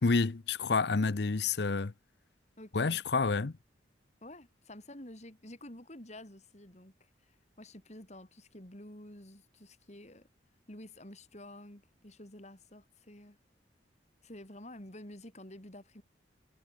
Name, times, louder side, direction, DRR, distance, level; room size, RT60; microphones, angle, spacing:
voice 1, 0.0-1.9 2.7-3.5, left 4 dB, 60° left, 0.7 m, -29 dB
voice 2, 2.6-3.0 4.2-10.3 10.7-13.4 14.2-16.0, left 1 dB, 35° left, 4.2 m, -50 dB
head